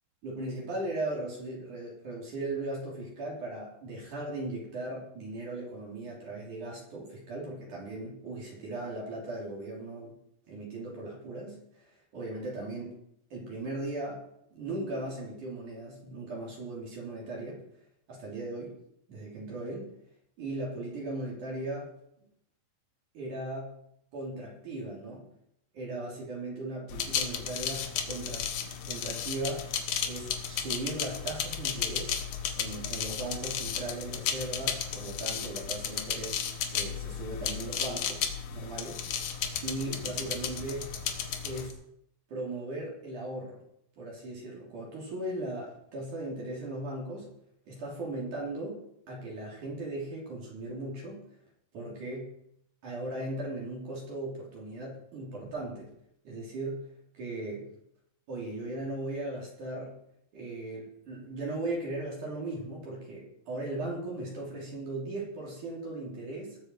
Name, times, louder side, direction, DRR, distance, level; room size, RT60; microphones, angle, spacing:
voice 1, 0.2-10.2 10.5-13.0 13.3-17.6 18.1-18.8 19.1-19.9 20.4-21.9 23.1-23.8 24.1-25.3 25.7-29.7 30.1-32.2 32.5-39.0 39.6-41.0 41.4-41.8 42.3-43.6 44.0-47.3 47.7-51.2 51.7-52.4 52.8-55.9 56.2-57.7 58.3-60.0 60.3-66.6, right 2 dB, 55° right, -3 dB, 4.5 m, -38 dB
sound 1, 26.9-41.7, left 8 dB, 65° left, 2.4 m, -34 dB
20.0 x 7.8 x 4.7 m, 0.74 s
omnidirectional pair, 4.5 m